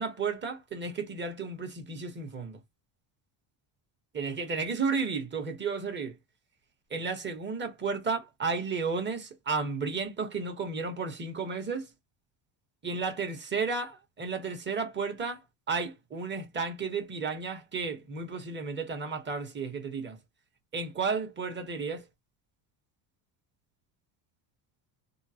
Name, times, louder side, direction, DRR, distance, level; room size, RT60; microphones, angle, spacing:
voice 1, 0.0-2.6 4.1-6.2 6.9-11.9 12.8-20.2 20.7-22.0, right 4 dB, 25° right, 1.0 m, -33 dB
3.7 x 2.0 x 2.7 m
cardioid pair, 145°, 46 cm